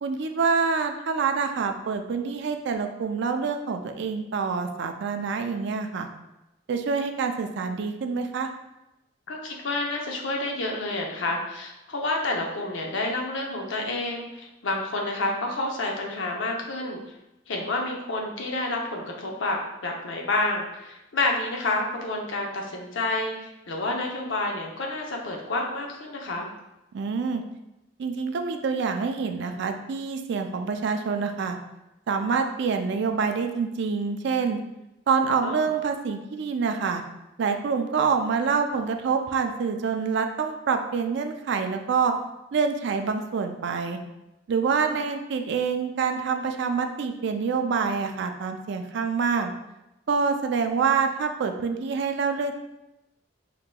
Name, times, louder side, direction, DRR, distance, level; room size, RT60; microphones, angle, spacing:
voice 1, 0.0-6.1 6.7-8.5 26.9-27.4 28.0-31.6 32.1-34.6 35.1-37.0 37.4-42.1 42.5-44.0 44.5-49.5 50.1-52.5, right 5 dB, 65° right, 6 dB, 0.4 m, -26 dB
voice 2, 9.3-17.0 17.5-26.5 35.4-35.7 44.8-45.0, left 2 dB, 75° left, 0 dB, 0.7 m, -29 dB
5.0 x 2.9 x 2.2 m, 0.94 s
head